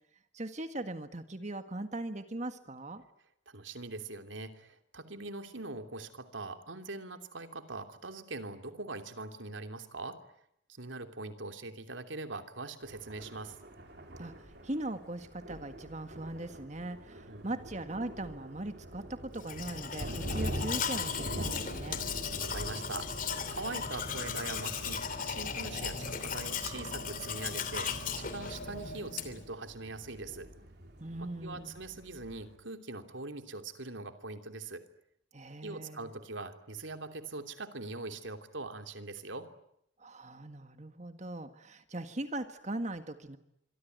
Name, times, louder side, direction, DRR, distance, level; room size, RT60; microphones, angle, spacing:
voice 1, 0.3-3.0 14.2-22.0 31.0-31.8 35.3-36.1 40.0-43.4, right 1 dB, 35° right, 9 dB, 1.7 m, -40 dB
voice 2, 3.5-10.2 10.7-13.6 17.3-17.5 22.4-30.5 31.2-34.8 35.6-39.5, right 3 dB, 80° right, 7 dB, 3.0 m, -42 dB
Thunder, 12.8-32.6, equal, 60° right, 5.1 m, -45 dB
Domestic sounds home sounds, 19.4-29.5, left 6 dB, 45° left, 2.9 m, -37 dB
26.0 x 23.5 x 9.4 m, 0.76 s
head